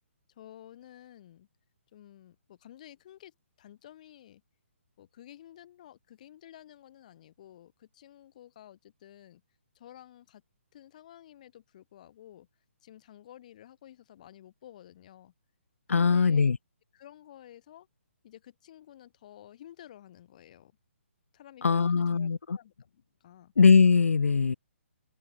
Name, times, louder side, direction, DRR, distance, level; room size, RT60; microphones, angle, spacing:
voice 1, 0.3-1.5 1.9-4.4 5.0-9.4 9.7-10.4 10.7-12.5 12.8-15.3 15.9-16.5 16.9-17.9 18.2-20.7 21.3-23.5, left 12 dB, 35° left, 6.4 m, -52 dB
voice 2, 15.9-16.6 21.6-22.6 23.6-24.5, left 5 dB, 85° left, 1.2 m, -21 dB
open air
hypercardioid pair, 170°, 7 cm